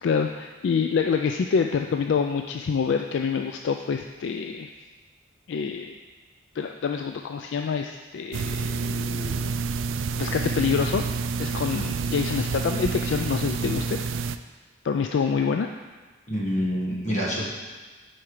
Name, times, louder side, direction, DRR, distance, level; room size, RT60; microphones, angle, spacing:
voice 1, 0.0-4.7 5.5-6.0 6.5-9.5 10.2-14.0 14.8-15.8, left 6 dB, 65° left, 4 dB, 0.3 m, -27 dB
sound 1, 8.3-14.4, right 4 dB, 75° right, 0.3 m, -28 dB
voice 2, 16.3-17.4, equal, 35° left, -4 dB, 1.6 m, -26 dB
8.5 x 4.6 x 4.9 m, 1.4 s
head